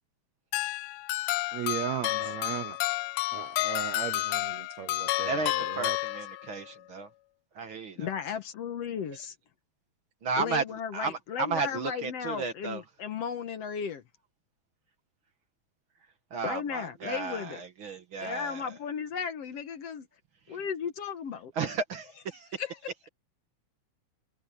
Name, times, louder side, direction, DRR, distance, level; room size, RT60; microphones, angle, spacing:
Deck The Halls - Christmas jingle played with bells, 0.5-6.7, left 19 dB, 85° left, 1.4 m, -31 dB
voice 1, 1.5-2.8 3.3-6.0 11.8-12.0, right 12 dB, 70° right, 1.9 m, -37 dB
voice 2, 5.3-7.1 7.6-8.0 10.2-10.6 10.9-12.8 16.3-18.6 21.6-22.5, right 5 dB, 50° right, 1.9 m, -33 dB
voice 3, 8.0-9.4 10.4-14.0 16.4-17.6 18.2-20.1 20.5-21.5 22.6-22.8, left 7 dB, 60° left, 2.1 m, -35 dB
omnidirectional pair, 3.5 m